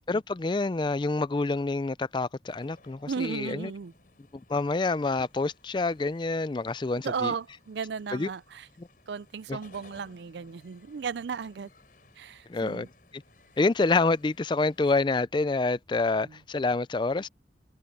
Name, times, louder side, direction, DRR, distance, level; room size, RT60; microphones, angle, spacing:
voice 1, 0.1-3.7 4.5-7.3 8.1-8.3 9.5-9.6 12.5-12.9 13.1-13.2 13.6-17.3, left 3 dB, 25° left, 0.4 m, -27 dB
sound 1, 2.5-15.1, left 3 dB, 50° left, 4.7 m, -60 dB
voice 2, 3.1-3.9 7.0-8.7 9.1-11.7 12.2-12.9 16.1-16.4, right 6 dB, 65° right, 0.4 m, -35 dB
head